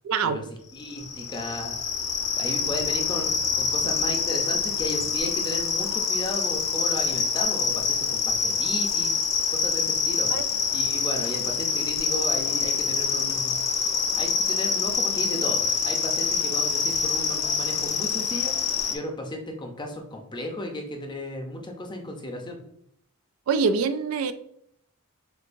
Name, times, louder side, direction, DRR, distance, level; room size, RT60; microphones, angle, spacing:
voice 1, 0.0-0.4 10.3-10.4 23.5-24.3, right 5 dB, 65° right, 11 dB, 0.3 m, -24 dB
voice 2, 0.7-1.8 2.4-9.2 9.5-10.3 10.7-13.7 14.2-18.5 18.9-22.6, left 1 dB, 20° left, 3 dB, 0.6 m, -35 dB
sound 1, 0.8-18.9, left 5 dB, 80° left, 0.7 m, -26 dB
6.5 x 2.6 x 2.6 m, 0.73 s
head